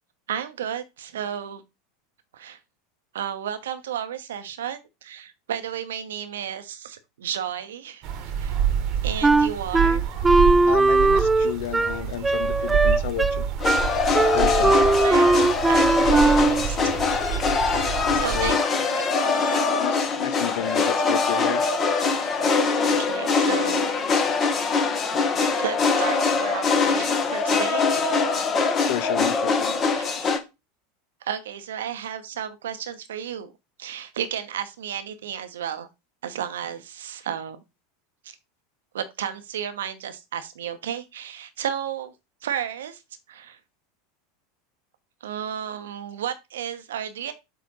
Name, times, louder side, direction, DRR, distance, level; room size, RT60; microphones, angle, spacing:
voice 1, 0.3-1.6 2.3-2.6 3.1-8.1 8.4-8.5 9.0-10.1 14.5-14.6 15.0-15.4 15.7-17.0 18.1-18.6 19.0-19.7 22.8-23.9 25.5-28.0 29.9-30.3 31.2-33.5 33.8-35.9 36.2-37.6 38.2-38.4 38.9-42.1 42.4-43.0 43.3-43.6 45.2-47.3, right 9 dB, 65° right, 0.9 m, -33 dB
sound 1, 8.0-18.5, right 8 dB, 45° right, 1.2 m, -28 dB
Wind instrument woodwind instrument, 9.2-16.7, right 3 dB, 15° right, 0.3 m, -20 dB
voice 2, 10.7-13.5 14.3-14.7 18.1-18.5 19.8-21.6 28.9-29.8, left 13 dB, 60° left, 0.6 m, -31 dB
sound 2, 13.6-30.4, left 4 dB, 30° left, 1.2 m, -23 dB
7.7 x 3.3 x 4.0 m
figure-of-eight pair, 80°, 0 cm